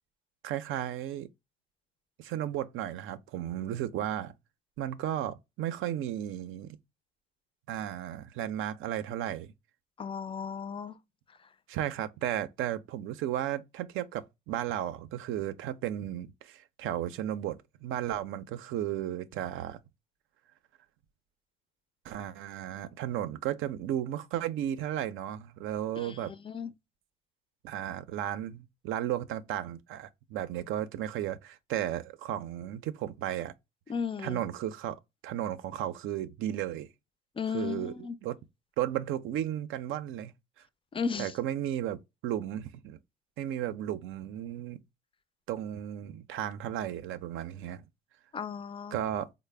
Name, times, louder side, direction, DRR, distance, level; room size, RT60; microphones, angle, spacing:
voice 1, 0.4-1.3 2.2-4.3 4.8-6.8 7.7-9.5 11.7-19.8 22.0-26.3 27.6-33.5 34.2-36.9 37.5-37.9 38.2-38.4 38.8-40.3 41.2-43.0 43.4-44.8 45.5-47.8 48.9-49.3, right 11 dB, 90° right, 0.5 m, -34 dB
voice 2, 10.0-11.0 26.0-26.7 33.9-34.4 37.4-38.1 40.9-41.3 48.3-49.0, left 6 dB, 25° left, 0.4 m, -35 dB
3.9 x 2.0 x 3.2 m
cardioid pair, 90°, 20 cm